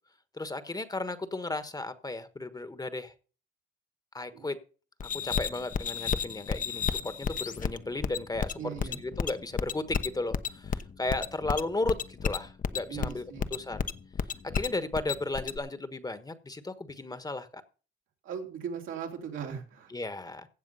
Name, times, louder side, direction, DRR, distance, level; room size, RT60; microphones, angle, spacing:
voice 1, 0.3-3.1 4.1-4.6 5.0-13.2 13.5-13.9 14.4-17.6 19.9-20.5, left 2 dB, 20° left, 12 dB, 1.3 m, -35 dB
sound 1, 5.0-15.6, left 7 dB, 45° left, 1.0 m, -32 dB
voice 2, 8.6-9.0 12.9-13.5 18.2-19.9, right 7 dB, 80° right, 2 dB, 3.2 m, -38 dB
16.0 x 7.2 x 5.6 m, 0.38 s
cardioid pair, 90°, 20 cm